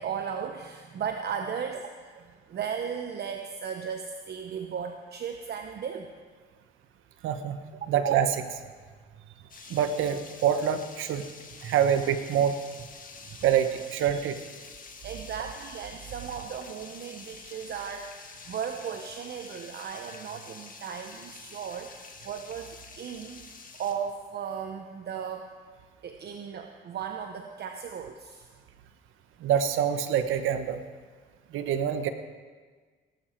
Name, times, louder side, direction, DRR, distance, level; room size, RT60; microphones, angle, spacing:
voice 1, 0.0-6.1 9.2-9.3 11.6-11.7 13.2-13.4 15.0-23.4 23.7-25.5 26.0-28.5, right 7 dB, 55° right, 5 dB, 0.9 m, -36 dB
voice 2, 7.2-7.6 7.9-8.6 9.7-11.2 11.6-12.6 13.4-14.4 29.4-30.8 31.5-32.1, right 9 dB, 85° right, 9 dB, 1.1 m, -26 dB
sound 1, 9.5-23.9, left 4 dB, 45° left, 1.8 m, -48 dB
18.0 x 12.0 x 4.5 m, 1.5 s
cardioid pair, 90°, 20 cm